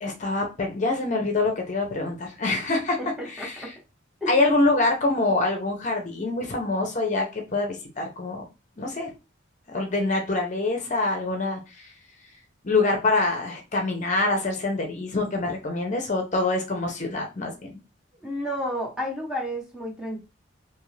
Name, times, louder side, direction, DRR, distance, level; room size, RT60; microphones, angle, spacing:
voice 1, 0.0-3.0 3.3-3.7 4.3-8.4 8.8-9.1 9.7-11.9 12.6-17.7, left 2 dB, 40° left, 2 dB, 0.6 m, -25 dB
voice 2, 3.0-3.7 4.2-4.5 18.2-20.2, equal, 5° right, -2 dB, 0.7 m, -31 dB
2.8 x 2.4 x 3.1 m, 0.28 s
head